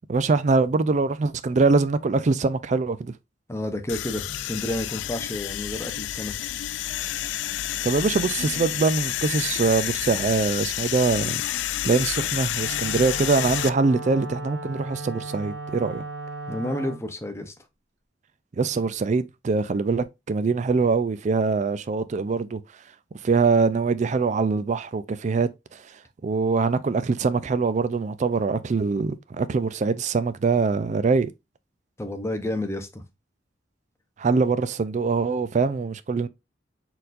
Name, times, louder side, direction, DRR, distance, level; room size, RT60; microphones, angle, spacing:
voice 1, 0.1-3.1 7.8-16.0 18.6-22.6 23.2-25.8 26.2-31.3 34.2-36.3, right 4 dB, 40° right, 0.4 m, -23 dB
voice 2, 3.5-6.5 16.5-17.5 32.0-33.0, left 1 dB, 15° left, 0.7 m, -30 dB
sound 1, 3.9-13.7, left 12 dB, 70° left, 0.3 m, -29 dB
Wind instrument woodwind instrument, 12.6-17.1, right 2 dB, 65° right, 1.1 m, -36 dB
4.4 x 3.9 x 2.5 m
head